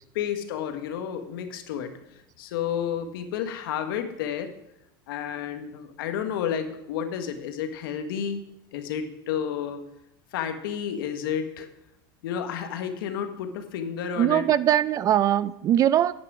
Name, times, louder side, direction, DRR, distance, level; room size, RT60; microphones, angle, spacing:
voice 1, 0.1-4.5 5.1-8.4 8.7-9.9 10.3-11.7 12.2-14.5, left 8 dB, 85° left, 1.3 m, -31 dB
voice 2, 14.2-16.1, right 11 dB, 30° right, 0.3 m, -21 dB
9.8 x 8.7 x 4.8 m
supercardioid pair, 140°, 12 cm